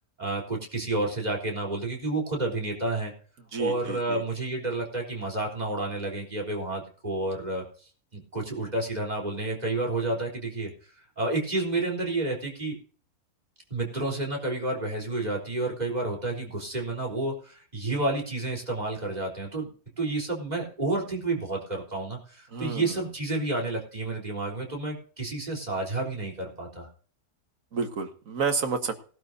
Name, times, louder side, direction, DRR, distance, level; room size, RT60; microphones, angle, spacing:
voice 1, 0.2-3.1 3.6-7.6 8.1-10.7 11.2-12.8 13.7-26.9, right 2 dB, 25° right, -1 dB, 3.9 m, -30 dB
voice 2, 3.5-4.2 22.5-23.0 27.7-29.1, right 5 dB, 60° right, 6 dB, 1.9 m, -30 dB
19.0 x 12.0 x 2.7 m, 0.43 s
omnidirectional pair, 1.6 m